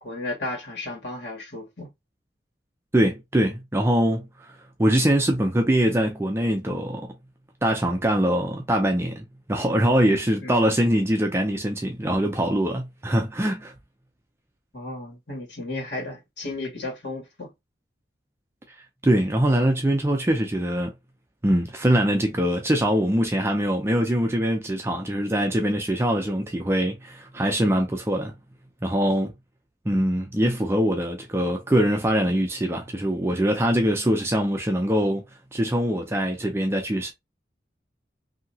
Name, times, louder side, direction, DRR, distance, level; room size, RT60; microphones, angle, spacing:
voice 1, 0.0-1.9 10.4-10.7 14.7-17.5, left 2 dB, 75° left, 1.8 m, -34 dB
voice 2, 2.9-4.5 4.8-7.1 7.6-13.7 19.0-20.9 21.4-28.3 28.8-29.3 29.9-35.2 35.5-37.1, equal, 15° right, 0.4 m, -23 dB
2.8 x 2.8 x 2.7 m
head